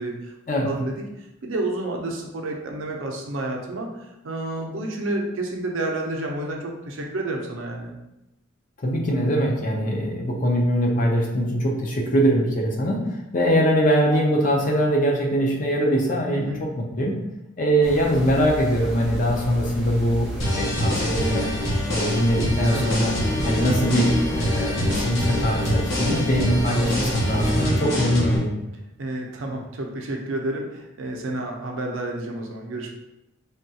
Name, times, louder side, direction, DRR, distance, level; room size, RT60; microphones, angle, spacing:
voice 1, 0.0-0.3 0.6-8.0 16.3-16.7 22.6-23.0 29.0-32.9, right 2 dB, 75° right, 1 dB, 0.5 m, -30 dB
voice 2, 8.8-17.1 17.6-21.5 21.9-23.1 23.4-28.6, equal, 40° left, 0 dB, 0.5 m, -22 dB
sound 1, 17.8-27.7, equal, ahead, 0.7 m, -33 dB
sound 2, 20.4-28.4, left 1 dB, 65° left, 0.8 m, -25 dB
3.4 x 2.3 x 2.7 m, 0.93 s
head